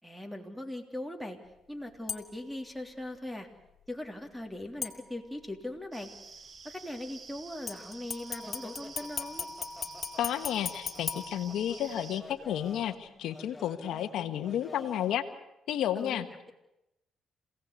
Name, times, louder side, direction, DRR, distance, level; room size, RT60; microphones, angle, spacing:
voice 1, 0.0-1.4 1.7-3.5 3.9-6.1 6.6-9.5 15.9-16.5, left 1 dB, ahead, 5 dB, 3.4 m, -40 dB
sound 1, 2.1-2.5 4.8-5.5 7.7-12.1 12.5-12.6, left 6 dB, 45° left, 2.8 m, -39 dB
sound 2, 5.9-12.2, right 5 dB, 40° right, 1.3 m, -49 dB
sound 3, 8.4-15.2, left 2 dB, 15° left, 2.0 m, -51 dB
voice 2, 10.2-15.2 15.7-16.3, left 10 dB, 80° left, 9 dB, 1.3 m, -32 dB
27.5 x 17.5 x 8.4 m, 0.89 s
cardioid pair, 90°, 0 cm